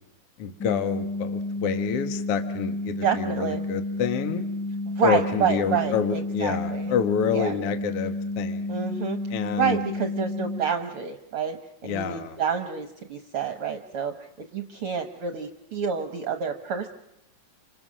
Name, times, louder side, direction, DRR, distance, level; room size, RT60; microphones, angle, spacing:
voice 1, 0.4-4.4 5.0-8.8 9.3-9.8 11.8-12.4, left 7 dB, 55° left, 8 dB, 2.1 m, -28 dB
sound 1, 0.6-10.6, left 2 dB, 5° left, 1.3 m, -31 dB
voice 2, 3.0-3.6 4.8-6.9 7.3-7.6 8.7-9.2 9.5-11.6 11.8-16.9, right 7 dB, 60° right, 6 dB, 1.7 m, -28 dB
29.5 x 26.0 x 6.3 m, 0.87 s
omnidirectional pair, 3.4 m